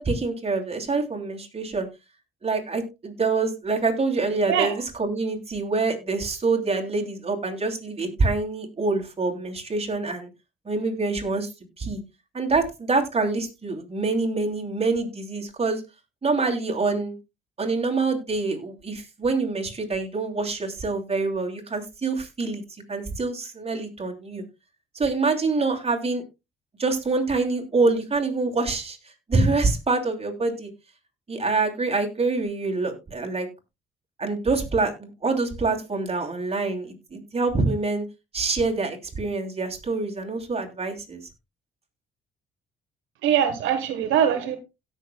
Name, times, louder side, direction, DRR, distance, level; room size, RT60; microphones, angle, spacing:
voice 1, 0.0-1.9 2.4-10.3 10.6-11.5 11.8-12.0 12.3-15.8 16.2-17.2 17.6-22.6 22.9-24.4 24.9-26.2 26.8-29.0 29.3-30.7 31.3-33.5 34.2-38.0 38.3-41.2, right 3 dB, 30° right, 2 dB, 2.8 m, -26 dB
voice 2, 43.2-44.6, right 8 dB, 90° right, 7 dB, 1.2 m, -22 dB
17.0 x 6.4 x 2.2 m, 0.25 s
cardioid pair, 90°, 20 cm